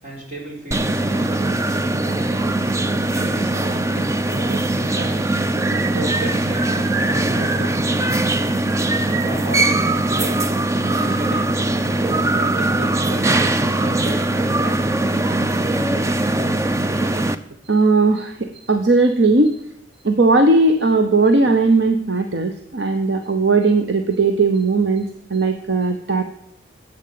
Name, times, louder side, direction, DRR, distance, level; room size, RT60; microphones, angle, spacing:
voice 1, 0.0-2.6 3.1-5.2 5.6-8.3 9.1-10.5 11.0-11.7 12.3-15.0, right 1 dB, 40° right, -2 dB, 4.2 m, -34 dB
sound 1, 0.7-17.3, right 2 dB, 15° right, 0.4 m, -20 dB
voice 2, 17.7-19.6 20.0-26.2, right 3 dB, 75° right, 6 dB, 0.9 m, -17 dB
11.5 x 8.1 x 7.6 m, 0.76 s
head